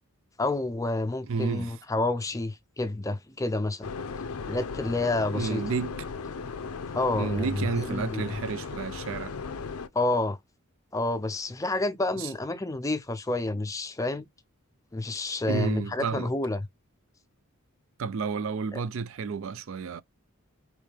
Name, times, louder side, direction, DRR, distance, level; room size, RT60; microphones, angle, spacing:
voice 1, 0.4-3.9 4.5-5.6 6.9-8.4 9.9-10.4 10.9-14.3 14.9-16.7 18.7-18.8, left 2 dB, 15° left, 0.4 m, -29 dB
voice 2, 1.2-1.8 5.3-6.1 7.2-9.3 12.2-12.3 15.5-16.3 18.0-20.0, right 5 dB, 60° right, 0.4 m, -31 dB
sound 1, 3.8-9.9, left 5 dB, 80° left, 0.6 m, -36 dB
5.1 x 3.2 x 3.3 m
head